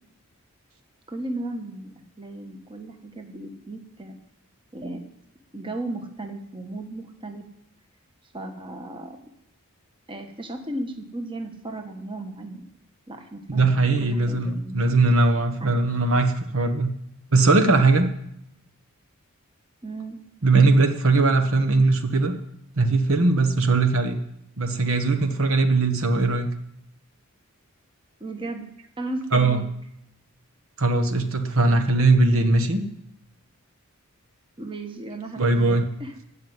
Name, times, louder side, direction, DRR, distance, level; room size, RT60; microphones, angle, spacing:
voice 1, 1.1-4.2 4.7-5.0 5.5-7.4 8.3-9.2 10.1-12.7 13.1-15.1 15.6-15.7 19.8-20.2 28.2-28.7 29.0-29.7 34.6-36.1, right 2 dB, 25° right, 5 dB, 1.3 m, -35 dB
voice 2, 13.5-16.9 17.3-18.1 20.4-22.3 22.8-24.2 24.6-26.5 29.3-29.6 30.8-32.8 35.4-35.9, right 3 dB, 65° right, 6 dB, 1.3 m, -20 dB
16.0 x 5.8 x 9.4 m, 0.78 s
head